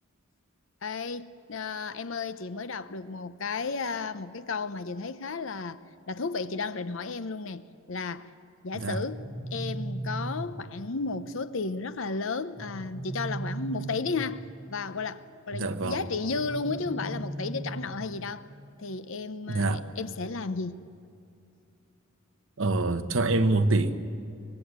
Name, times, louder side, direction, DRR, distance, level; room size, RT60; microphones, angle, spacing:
voice 1, 0.8-5.8 6.1-8.3 8.6-18.4 18.8-20.8, left 4 dB, 65° left, 0.7 m, -33 dB
sound 1, 8.9-10.9 12.6-14.6 16.3-18.3, right 1 dB, 15° right, 1.4 m, -37 dB
voice 2, 15.5-16.0 19.5-19.9 22.6-24.0, right 2 dB, 65° right, 1.1 m, -25 dB
24.5 x 20.0 x 8.2 m
head